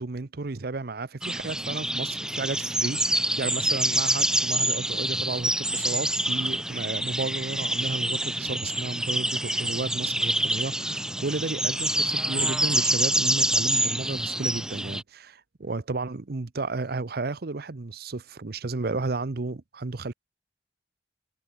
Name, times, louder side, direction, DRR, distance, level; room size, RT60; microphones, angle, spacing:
voice 1, 0.0-20.1, right 3 dB, 60° right, 0.8 m, -33 dB
sound 1, 1.2-15.0, right 1 dB, 5° right, 1.4 m, -26 dB
sound 2, 7.5-11.8, right 1 dB, 90° right, 7.8 m, -56 dB
head